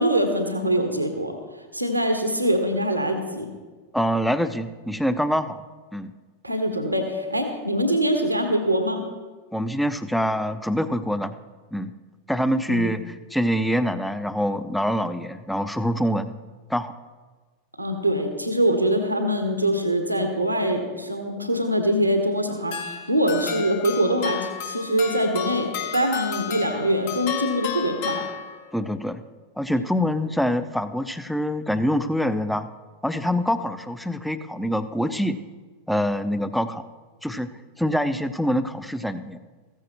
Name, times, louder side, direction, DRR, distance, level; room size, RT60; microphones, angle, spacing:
voice 1, 0.0-1.3 1.7-3.5 6.4-9.0 12.7-12.9 17.8-28.2, equal, 85° right, 5 dB, 1.4 m, -23 dB
voice 2, 3.9-5.6 5.9-6.1 9.5-11.3 11.7-11.9 12.3-16.3 16.7-16.9 28.7-29.2 29.6-32.7 33.0-35.4 35.9-36.8 37.2-37.5 37.8-39.4, equal, ahead, 11 dB, 0.6 m, -25 dB
sound 1, 22.7-28.9, left 9 dB, 50° left, 1.0 m, -32 dB
15.0 x 14.0 x 3.0 m, 1.4 s
figure-of-eight pair, 90°, 0 cm